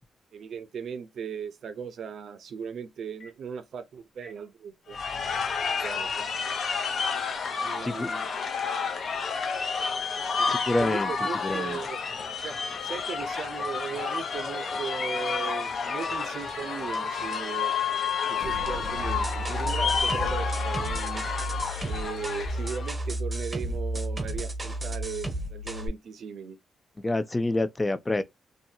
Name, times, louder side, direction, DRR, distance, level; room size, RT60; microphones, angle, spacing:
voice 1, 0.3-5.0 5.5-6.3 7.6-8.3 10.4-12.0 12.4-17.7 18.3-21.3 21.8-26.6, right 6 dB, 65° right, 0.5 m, -38 dB
Boom, 3.2-3.3 4.2-4.3 5.3-5.4 6.3-6.4 7.3-7.4 8.3-8.4 9.3-9.4 10.1-10.2 10.9-11.0 11.5-11.6 12.0-12.1 12.5-12.6 12.9-13.0 13.3-20.8, left 1 dB, 75° left, 1.4 m, -43 dB
sound 1, 4.9-22.9, left 5 dB, 55° left, 0.7 m, -30 dB
voice 2, 10.5-11.1 11.4-11.8 27.0-28.2, left 2 dB, 20° left, 0.3 m, -27 dB
sound 2, 19.0-25.9, right 1 dB, 20° right, 0.7 m, -32 dB
2.7 x 2.6 x 2.2 m
cardioid pair, 115°, 0 cm